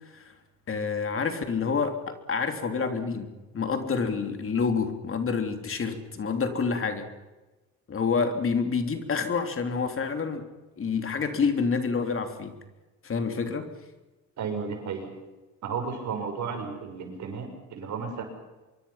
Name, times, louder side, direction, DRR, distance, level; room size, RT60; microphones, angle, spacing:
voice 1, 0.7-7.1 7.9-10.4 10.8-12.6 13.0-13.7, left 5 dB, 45° left, 6 dB, 3.2 m, -28 dB
voice 2, 14.4-15.1 15.6-18.2, right 5 dB, 70° right, 4 dB, 6.4 m, -33 dB
25.5 x 23.0 x 5.8 m, 1.2 s
cardioid pair, 90°, 30 cm